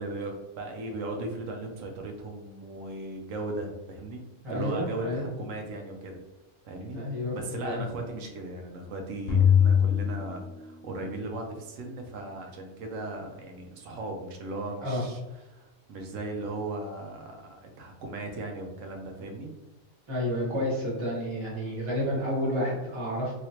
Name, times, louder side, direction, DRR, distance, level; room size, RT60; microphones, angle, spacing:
voice 1, 0.0-4.2 4.5-6.2 6.6-7.0 7.3-15.2 15.5-19.5, right 2 dB, 85° right, 2 dB, 1.0 m, -37 dB
voice 2, 4.4-5.2 6.9-7.8 14.8-15.0 20.1-23.3, equal, 25° right, -6 dB, 1.2 m, -30 dB
sound 1, 9.3-11.1, left 8 dB, 90° left, 1.1 m, -23 dB
3.1 x 2.7 x 2.8 m, 1.1 s
omnidirectional pair, 1.3 m